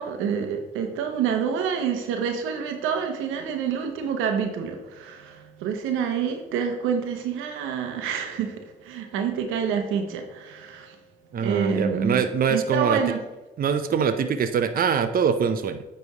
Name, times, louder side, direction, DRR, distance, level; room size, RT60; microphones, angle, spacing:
voice 1, 0.0-11.0 11.4-13.2, right 7 dB, 90° right, 5 dB, 0.9 m, -27 dB
voice 2, 11.3-13.0 13.6-15.8, right 6 dB, 45° right, 8 dB, 0.6 m, -23 dB
9.3 x 3.4 x 4.7 m, 1.0 s
supercardioid pair, 60°, 20 cm